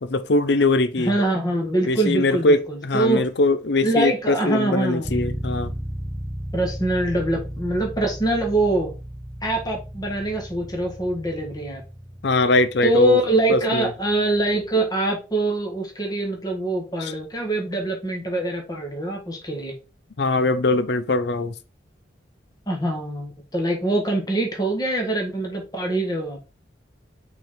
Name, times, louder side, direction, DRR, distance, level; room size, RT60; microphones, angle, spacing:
voice 1, 0.0-1.1 1.9-5.7 12.2-13.2 13.5-13.9 17.0-17.1 20.2-21.5, left 2 dB, 60° left, 0.6 m, -21 dB
voice 2, 1.0-3.3 3.8-5.1 6.5-8.9 9.4-11.8 12.8-19.8 22.7-26.4, right 1 dB, 20° left, 1.8 m, -24 dB
sound 1, 5.0-14.8, equal, ahead, 0.5 m, -35 dB
5.8 x 3.9 x 4.3 m
head